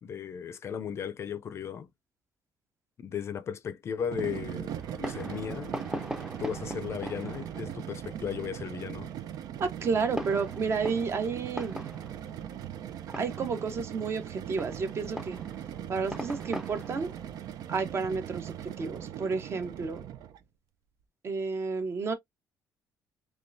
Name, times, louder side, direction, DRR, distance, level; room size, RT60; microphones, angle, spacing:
voice 1, 0.0-1.9 3.0-5.7 6.4-9.1, left 8 dB, 40° left, 0.5 m, -36 dB
sound 1, 4.0-20.4, right 10 dB, 70° right, 0.6 m, -40 dB
Fireworks, 4.8-19.0, equal, 5° right, 0.6 m, -42 dB
voice 2, 9.6-11.8 13.2-15.4 15.9-17.1 17.7-20.0 21.2-22.1, right 5 dB, 40° right, 1.0 m, -31 dB
3.6 x 3.2 x 2.6 m
cardioid pair, 145°, 7 cm